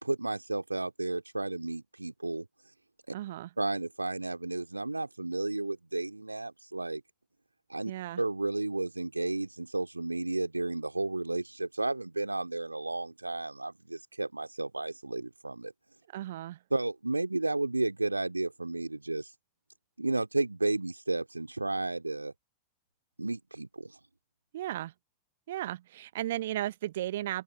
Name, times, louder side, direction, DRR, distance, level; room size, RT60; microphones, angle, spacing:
voice 1, 0.0-2.7 3.1-3.2 3.6-7.0 7.7-7.9 8.2-15.7 16.7-19.3 20.0-22.3 23.2-24.0, right 2 dB, 85° right, 2.8 m, -32 dB
voice 2, 3.1-3.5 7.8-8.2 16.1-16.6 24.5-24.9 25.5-27.4, right 13 dB, 55° right, 0.6 m, -35 dB
open air
figure-of-eight pair, 90°, 0 cm